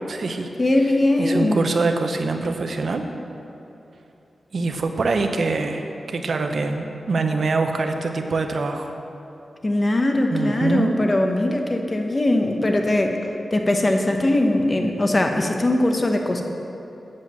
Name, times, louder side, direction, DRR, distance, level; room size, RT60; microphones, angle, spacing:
voice 1, 0.1-0.5 1.2-3.1 4.5-8.9 10.3-10.9, right 3 dB, 60° right, 5 dB, 0.8 m, -24 dB
voice 2, 0.6-1.8 9.6-13.2 13.5-16.4, left 1 dB, 25° left, 3 dB, 0.9 m, -20 dB
8.7 x 7.4 x 7.4 m, 2.8 s
wide cardioid pair, 135°, 0 cm